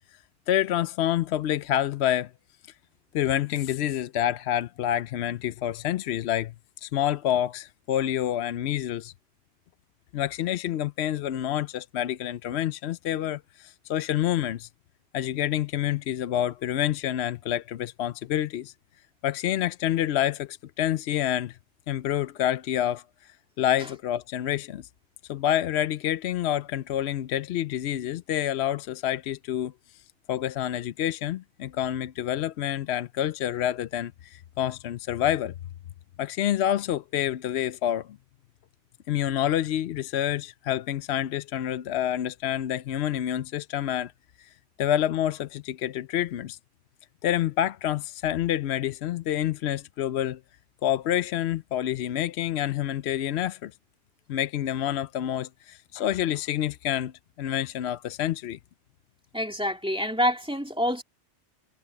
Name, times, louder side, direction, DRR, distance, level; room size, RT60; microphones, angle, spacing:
voice 1, 0.5-2.3 3.1-6.5 6.8-9.1 10.1-14.7 15.1-18.7 19.2-21.6 21.9-23.0 23.6-24.9 25.3-30.0 30.3-35.5 36.2-38.2 39.1-44.1 44.4-44.5 44.8-46.6 47.2-50.4 50.8-53.7 54.3-57.1 57.4-58.6, left 11 dB, 70° left, 0.8 m, -28 dB
voice 2, 59.3-61.0, equal, 5° right, 2.1 m, -26 dB
omnidirectional pair, 1.2 m